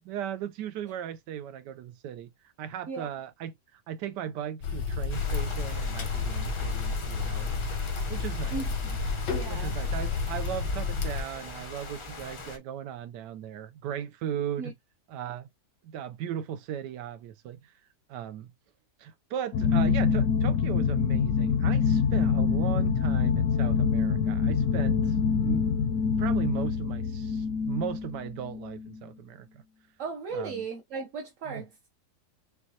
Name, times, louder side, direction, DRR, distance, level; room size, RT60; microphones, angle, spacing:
voice 1, 0.0-2.3 2.6-7.6 8.1-8.6 9.5-14.7 15.1-15.5 15.8-17.7 18.1-18.5 19.0-25.6 26.2-29.6 30.3-30.6 31.5-31.6, right 9 dB, 80° right, 1.3 m, -37 dB
sound 1, 4.6-11.2, left 4 dB, 85° left, 1.6 m, -31 dB
sound 2, 5.1-12.6, left 3 dB, 50° left, 0.3 m, -42 dB
voice 2, 8.5-9.0 9.3-9.8 14.6-14.7 30.0-31.8, right 4 dB, 55° right, 1.0 m, -36 dB
sound 3, 19.5-29.0, left 6 dB, 65° left, 0.8 m, -25 dB
6.2 x 2.3 x 2.7 m
omnidirectional pair, 1.8 m